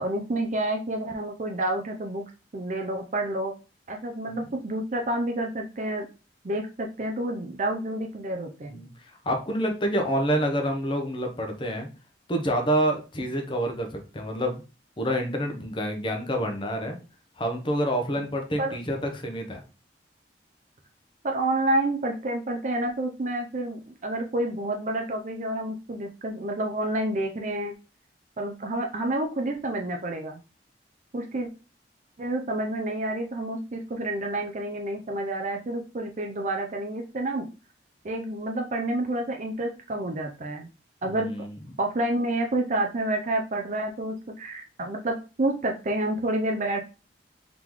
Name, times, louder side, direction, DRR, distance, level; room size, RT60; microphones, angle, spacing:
voice 1, 0.0-2.2 2.5-3.5 3.9-6.1 6.4-8.8 18.2-18.3 18.6-18.8 21.2-27.7 28.4-30.4 31.1-31.5 32.2-37.5 38.0-40.7 41.0-41.3 41.8-46.8, right 1 dB, 45° right, 2 dB, 0.5 m, -29 dB
voice 2, 9.2-11.9 12.3-14.6 15.0-17.0 17.4-19.6 41.0-41.5, equal, 30° left, 4 dB, 0.9 m, -27 dB
3.8 x 3.7 x 3.1 m, 0.32 s
head